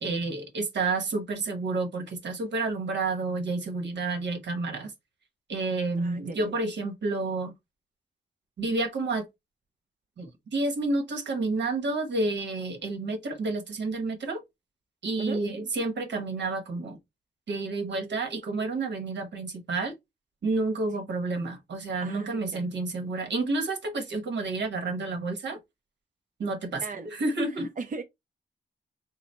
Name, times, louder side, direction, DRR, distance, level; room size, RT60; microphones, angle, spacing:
voice 1, 0.0-4.9 5.5-7.5 8.6-9.3 10.2-14.4 15.0-17.0 17.5-19.9 20.4-25.6 26.4-27.7, right 3 dB, 80° right, 1.1 m, -30 dB
voice 2, 6.0-6.5 15.2-15.4 22.0-22.6 26.8-27.1 27.4-28.0, right 4 dB, 45° right, 0.6 m, -38 dB
3.9 x 2.0 x 4.1 m
wide cardioid pair, 105°, 18 cm